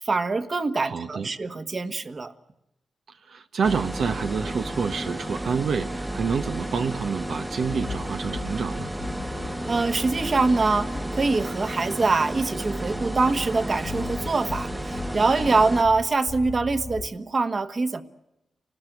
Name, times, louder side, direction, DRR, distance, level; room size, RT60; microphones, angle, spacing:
voice 1, 0.0-2.3 9.7-18.0, right 3 dB, 40° right, 11 dB, 1.4 m, -24 dB
voice 2, 0.8-1.3 3.1-8.9, right 6 dB, 70° right, 7 dB, 0.9 m, -28 dB
sound 1, 3.6-15.8, right 1 dB, 10° right, 1.1 m, -32 dB
sound 2, 7.6-17.1, left 5 dB, 65° left, 2.2 m, -40 dB
29.5 x 19.5 x 8.0 m, 0.92 s
wide cardioid pair, 105°, 0 cm